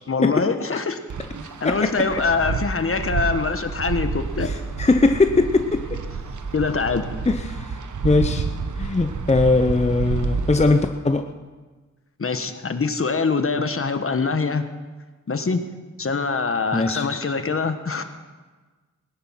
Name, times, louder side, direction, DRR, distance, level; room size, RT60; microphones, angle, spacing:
voice 1, 0.1-1.0 1.6-4.5 6.5-7.1 12.2-14.7 15.3-15.6 16.0-18.0, left 4 dB, 45° left, 8 dB, 1.3 m, -24 dB
Wind, 1.1-10.9, right 5 dB, 85° right, 1.1 m, -29 dB
voice 2, 1.6-2.1 4.4-6.0 7.3-8.5 8.8-11.2 16.7-17.1, left 3 dB, 20° left, 6 dB, 0.8 m, -20 dB
20.0 x 11.0 x 5.8 m, 1.3 s
wide cardioid pair, 85°, 29 cm